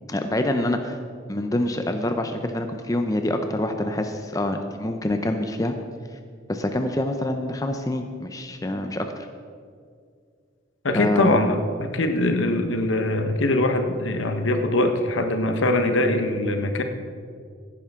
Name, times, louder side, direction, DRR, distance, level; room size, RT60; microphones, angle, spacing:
voice 1, 0.1-1.0 1.3-5.7 6.5-9.3 10.9-11.4, left 1 dB, 15° left, 6 dB, 0.5 m, -26 dB
voice 2, 10.8-16.8, left 2 dB, 75° left, 6 dB, 1.1 m, -22 dB
16.5 x 10.0 x 3.7 m, 2.2 s
head